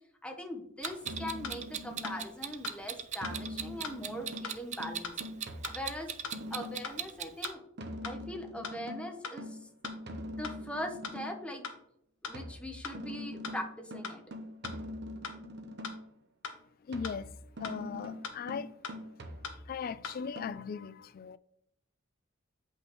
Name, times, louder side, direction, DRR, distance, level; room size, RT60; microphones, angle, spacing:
voice 1, 0.2-5.2 5.6-6.1 6.5-7.6 8.0-9.6 10.3-11.7 12.2-14.2, left 1 dB, 5° left, 0.9 m, -41 dB
sound 1, 0.8-1.0 1.4-1.6 2.0-2.2 2.6-2.8 3.2-3.4 3.8-4.0 4.4-4.6 5.0-5.2 5.6-5.8 6.2-6.4 6.8-7.0 7.4-7.6 8.0-8.2 8.6-8.8 9.2-9.4 9.8-10.0 10.4-10.6 11.0-11.2 11.6-11.8 12.2-12.4 12.8-13.0 13.4-13.6 14.0-14.2 14.6-14.8 15.2-15.4 15.8-16.0 16.4-16.6 17.0-17.2 17.6-17.8 18.2-18.4 18.8-19.0 19.4-19.6 20.0-20.2, left 5 dB, 85° left, 1.0 m, -40 dB
Clock, 0.8-7.5, right 9 dB, 35° right, 0.5 m, -39 dB
sound 2, 1.0-2.5 3.2-7.0 7.8-11.5 12.3-16.2 16.9-19.9 20.4-20.5, equal, 55° right, 0.9 m, -43 dB
voice 2, 16.9-17.3 17.6-18.7 19.7-21.4, left 6 dB, 45° left, 0.3 m, -38 dB
8.1 x 5.6 x 3.1 m
head